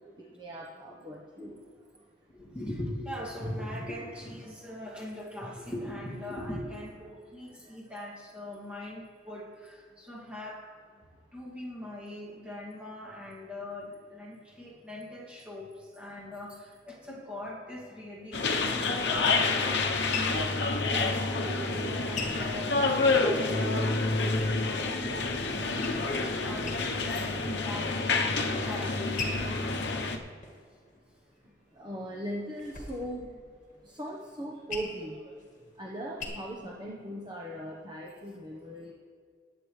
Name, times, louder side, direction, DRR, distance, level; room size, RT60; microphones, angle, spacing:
voice 1, 0.2-1.6 4.6-4.8 7.5-7.8 31.7-33.3 33.8-35.4 35.8-38.9, equal, 25° right, -3 dB, 1.0 m, -39 dB
voice 2, 2.3-10.7 11.3-20.5 20.9-22.8 23.2-24.0 24.6-29.2, left 1 dB, 5° right, -4 dB, 2.3 m, -41 dB
sound 1, 18.3-30.2, left 3 dB, 65° left, 0.9 m, -28 dB
sound 2, 20.1-23.4 23.8-25.1 25.4-26.3 26.6-27.2 27.6-28.2 28.7-31.4 31.9-36.2, left 4 dB, 45° left, 1.8 m, -42 dB
20.5 x 8.2 x 3.3 m, 2.1 s
head